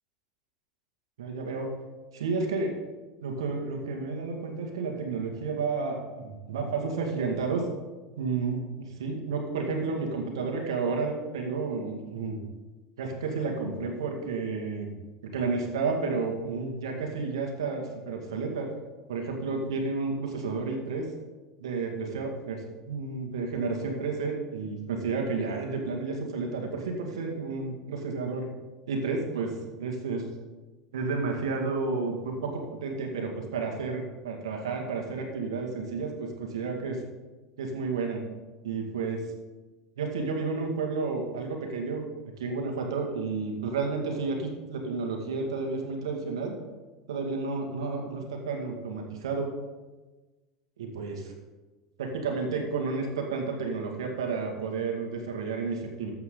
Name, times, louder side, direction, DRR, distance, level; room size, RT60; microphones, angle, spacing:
voice 1, 1.2-1.7 2.1-2.7 3.2-7.7 8.2-12.4 13.0-14.9 15.2-18.7 19.1-21.1 21.6-28.5 28.9-29.5 29.8-30.2 30.9-37.0 37.6-38.2 38.6-39.2 40.0-42.0 42.4-46.5 47.1-49.5 50.8-51.3 52.0-56.1, right 4 dB, 85° right, 2 dB, 2.1 m, -31 dB
12.5 x 8.1 x 3.9 m, 1.2 s
hypercardioid pair, 95°, 3 cm